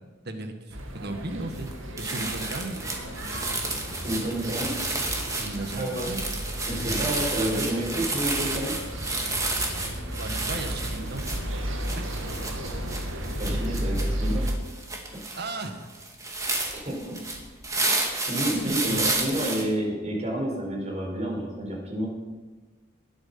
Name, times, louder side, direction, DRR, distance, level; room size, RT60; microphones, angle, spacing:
voice 1, 0.2-1.7 2.0-2.8 5.4-6.2 6.8-7.7 10.2-11.2 11.9-12.0 13.5-13.6 15.4-15.9 18.5-19.6, right 2 dB, 55° right, 6 dB, 1.7 m, -36 dB
sound 1, 0.7-14.5, equal, 85° right, 1.8 m, -33 dB
sound 2, 1.5-1.7 2.0-19.6, right 2 dB, 15° right, 2.1 m, -31 dB
voice 2, 4.0-4.7 5.7-6.0 6.6-8.7 13.4-14.4 16.7-17.2 18.2-22.1, right 1 dB, 35° right, -1 dB, 4.5 m, -29 dB
21.0 x 8.2 x 5.7 m, 1.3 s
head